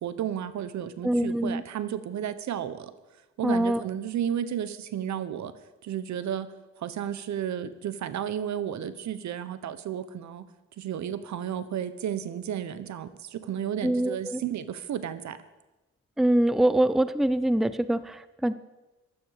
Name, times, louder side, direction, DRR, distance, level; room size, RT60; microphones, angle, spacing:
voice 1, 0.0-2.9 3.4-5.5 5.8-6.5 6.8-10.5 10.8-15.4, right 9 dB, 65° right, 14 dB, 1.2 m, -32 dB
voice 2, 1.0-1.6 3.4-3.8 13.8-14.4 16.2-18.5, right 1 dB, ahead, 15 dB, 0.6 m, -24 dB
15.5 x 12.0 x 6.7 m, 1.1 s
cardioid pair, 90°, 30 cm